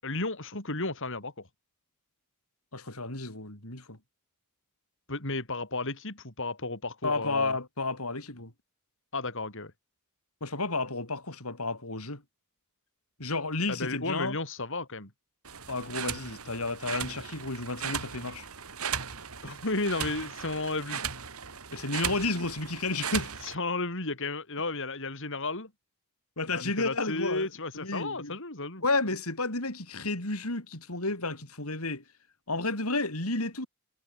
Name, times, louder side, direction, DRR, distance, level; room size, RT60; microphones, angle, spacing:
voice 1, 0.0-1.5 5.1-7.5 9.1-9.7 13.7-15.1 19.4-21.0 23.4-25.7 26.5-28.8, left 2 dB, 60° left, 7.1 m, -33 dB
voice 2, 2.7-4.0 7.0-8.5 10.4-12.2 13.2-14.4 15.7-18.5 21.7-23.3 26.4-27.5 27.7-28.3 28.8-32.0 32.5-33.7, left 3 dB, 85° left, 7.1 m, -31 dB
sound 1, 15.5-23.6, right 7 dB, 85° right, 3.7 m, -37 dB
head